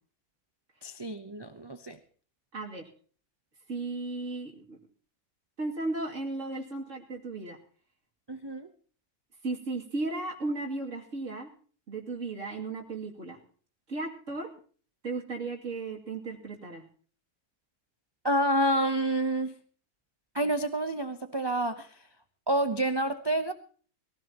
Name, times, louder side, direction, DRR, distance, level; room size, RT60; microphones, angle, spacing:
voice 1, 0.8-2.0 8.3-8.7 18.2-19.5 20.3-22.0 22.5-23.5, right 1 dB, 25° right, 8 dB, 0.6 m, -28 dB
voice 2, 2.5-2.9 3.7-4.8 5.6-7.6 9.4-11.5 11.9-13.4 13.9-14.5 15.0-16.8, right 3 dB, 50° right, -1 dB, 3.0 m, -35 dB
22.0 x 16.0 x 3.0 m, 0.43 s
omnidirectional pair, 1.6 m